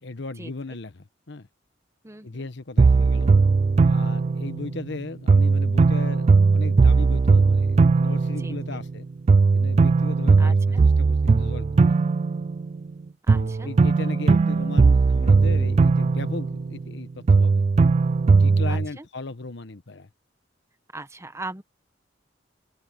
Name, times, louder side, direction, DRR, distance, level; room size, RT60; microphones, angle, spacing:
voice 1, 0.0-1.5 2.2-3.3 3.8-9.1 9.5-12.0 13.3-17.7 18.3-20.1, left 3 dB, 65° left, 1.1 m, -37 dB
voice 2, 2.0-2.5 8.4-8.8 10.4-10.8 13.3-13.7 18.7-19.0 20.9-21.6, right 2 dB, 15° right, 1.1 m, -39 dB
sound 1, 2.8-4.9 5.3-9.0 9.3-12.9 13.3-17.0 17.3-18.9, right 4 dB, 35° right, 0.3 m, -19 dB
head